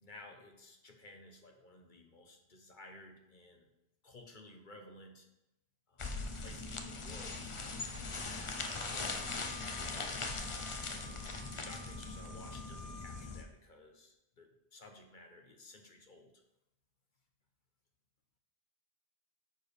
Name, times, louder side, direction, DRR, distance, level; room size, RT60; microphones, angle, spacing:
voice 1, 0.0-3.7 4.0-5.3 5.9-7.6 8.8-9.4 11.0-11.3 11.5-16.3, left 2 dB, 50° left, 3 dB, 1.2 m, -56 dB
sound 1, 6.0-13.4, left 3 dB, 35° left, 0.7 m, -40 dB
Wind instrument woodwind instrument, 8.5-13.2, left 3 dB, 55° right, 1.6 m, -54 dB
13.0 x 4.6 x 3.4 m, 0.88 s
omnidirectional pair, 1.1 m